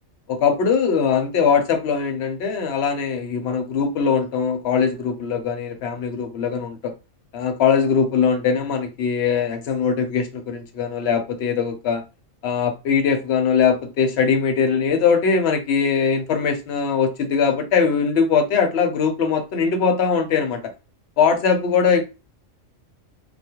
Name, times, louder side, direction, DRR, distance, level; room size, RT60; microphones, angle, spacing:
voice 1, 0.3-6.9 7.3-12.0 12.4-20.6 21.2-22.1, left 6 dB, 65° left, 0.7 m, -21 dB
2.3 x 2.2 x 2.8 m
omnidirectional pair, 1.4 m